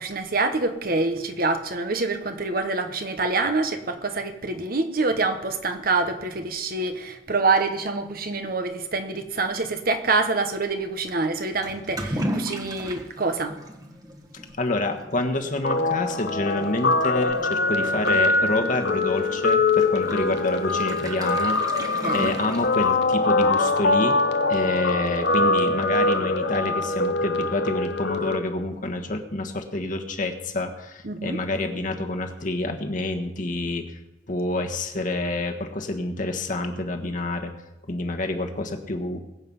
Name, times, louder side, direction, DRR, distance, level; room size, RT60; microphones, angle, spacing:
voice 1, 0.0-13.5 21.8-22.3 31.0-31.4, right 3 dB, 50° right, 7 dB, 1.3 m, -26 dB
Toilet flush / Liquid, 11.6-23.3, right 1 dB, 20° right, 1.6 m, -36 dB
voice 2, 14.6-21.6 22.1-24.2 24.5-33.9 34.3-37.5 37.9-39.2, left 2 dB, 45° left, 4 dB, 1.5 m, -27 dB
Guitar, 15.6-28.4, left 3 dB, 65° left, 1.0 m, -23 dB
21.0 x 8.1 x 5.5 m, 0.98 s
head